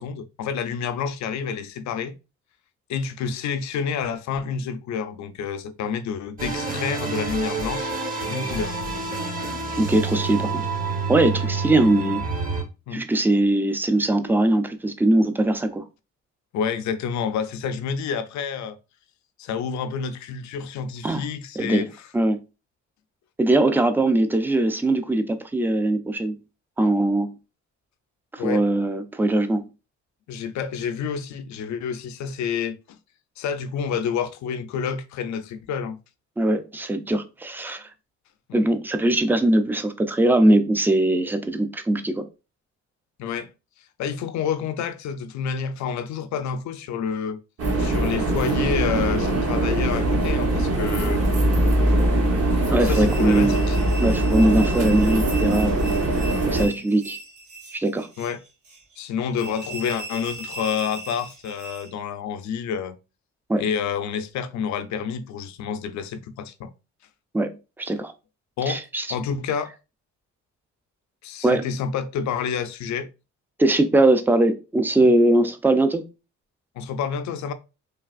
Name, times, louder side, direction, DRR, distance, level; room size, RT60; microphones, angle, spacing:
voice 1, 0.0-2.2 2.9-7.9 8.3-8.7 12.9-13.0 16.5-18.8 19.4-21.9 28.4-28.6 30.3-33.0 33.4-36.0 38.5-38.6 43.2-43.5 44.0-47.4 47.8-51.3 52.8-53.8 58.2-58.4 59.0-63.0 63.6-66.7 68.6-68.8 69.1-69.7 71.2-73.1 75.0-75.1 76.8-77.5, left 7 dB, 70° left, 0.5 m, -29 dB
sound 1, 6.4-12.6, right 4 dB, 30° right, 0.8 m, -28 dB
voice 2, 9.8-10.6 11.1-12.2 12.9-15.8 21.0-21.2 21.6-21.9 22.1-22.4 23.4-26.4 26.8-27.3 28.3-29.6 36.4-37.9 38.5-42.3 52.7-53.5 54.0-55.9 56.1-57.2 57.7-58.1 63.5-63.6 67.3-68.1 68.7-69.1 71.4-71.7 73.6-76.1, right 1 dB, 5° right, 0.3 m, -21 dB
sound 2, 47.6-56.7, right 1 dB, 50° right, 1.0 m, -22 dB
sound 3, 52.8-61.9, right 2 dB, 75° right, 1.1 m, -38 dB
3.3 x 2.4 x 2.3 m
cardioid pair, 90°, 30 cm